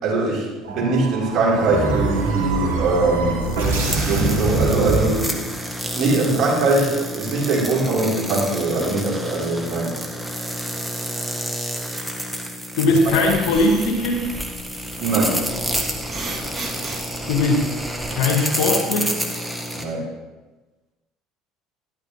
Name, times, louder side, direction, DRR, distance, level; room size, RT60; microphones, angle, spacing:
voice 1, 0.0-3.4 4.0-5.3 5.9-9.9 15.0-15.4 19.7-20.1, right 2 dB, 55° right, -4 dB, 4.2 m, -21 dB
sound 1, 0.6-5.7, right 3 dB, 80° right, 2.6 m, -24 dB
sound 2, 3.4-19.8, equal, ahead, 1.6 m, -29 dB
voice 2, 12.8-14.3 17.3-17.8 18.1-19.2, left 2 dB, 65° left, 1 dB, 2.1 m, -19 dB
sound 3, 13.0-18.1, right 2 dB, 25° right, 3.2 m, -35 dB
12.5 x 12.0 x 3.2 m, 1.2 s
hypercardioid pair, 65°, 0 cm